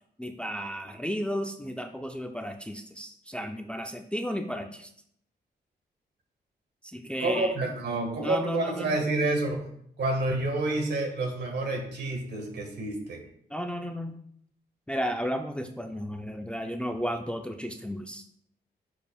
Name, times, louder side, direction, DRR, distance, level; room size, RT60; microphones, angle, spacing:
voice 1, 0.2-4.9 6.8-7.5 8.2-9.0 13.5-14.2 14.9-18.2, equal, 5° left, 4 dB, 0.5 m, -33 dB
voice 2, 7.2-9.7 10.0-13.2, right 2 dB, 65° right, 2 dB, 1.8 m, -29 dB
10.5 x 4.7 x 2.4 m, 0.69 s
cardioid pair, 85°, 18 cm